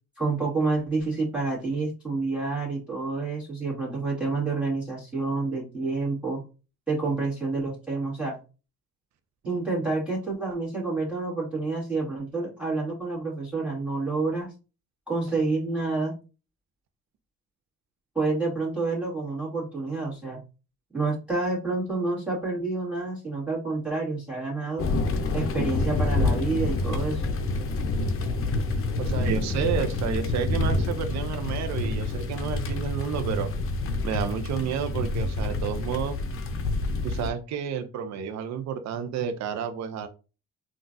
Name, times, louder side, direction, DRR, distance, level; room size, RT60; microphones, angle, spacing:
voice 1, 0.2-6.4 6.9-8.4 9.5-14.5 15.1-16.1 18.2-20.4 20.9-24.8 25.3-27.4, right 3 dB, 5° right, -4 dB, 1.7 m, -28 dB
sound 1, 24.8-37.3, left 2 dB, 40° left, 0.6 m, -27 dB
voice 2, 29.0-33.5 34.0-36.2 37.0-40.1, right 8 dB, 55° right, 8 dB, 0.5 m, -30 dB
3.7 x 2.4 x 2.6 m, 0.32 s
supercardioid pair, 65°, 33 cm